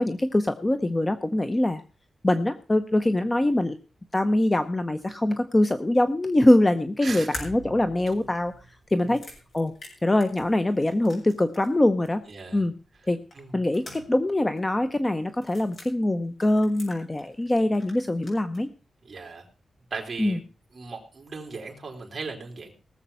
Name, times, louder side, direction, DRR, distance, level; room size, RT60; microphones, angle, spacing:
voice 1, 0.0-1.8 2.2-3.8 4.1-8.5 8.9-9.2 9.5-9.7 10.0-12.2 12.5-12.7 13.1-13.2 13.5-18.7 20.2-20.4, left 1 dB, 15° left, 10 dB, 0.7 m, -23 dB
sound 1, 7.3-11.8 12.0-12.1 13.3-14.3 14.6-14.7 15.3-15.9 16.4-17.5 17.7-18.6, left 1 dB, 50° left, 6.1 m, -43 dB
voice 2, 12.3-12.6 13.4-13.5 19.1-19.4 19.9-20.4 20.7-22.7, right 4 dB, 35° right, 2 dB, 3.6 m, -37 dB
18.5 x 7.3 x 5.5 m, 0.33 s
wide cardioid pair, 150°, 0 cm